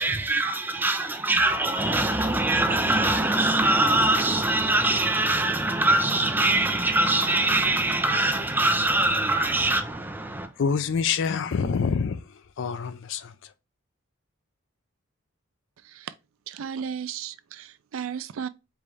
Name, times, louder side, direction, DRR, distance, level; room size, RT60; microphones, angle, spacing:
voice 1, 0.0-10.5, right 2 dB, 10° right, 0.5 m, -23 dB
voice 2, 10.6-13.5, left 6 dB, 60° left, 0.4 m, -27 dB
voice 3, 16.5-18.5, right 7 dB, 70° right, 0.4 m, -34 dB
4.7 x 2.6 x 3.3 m
head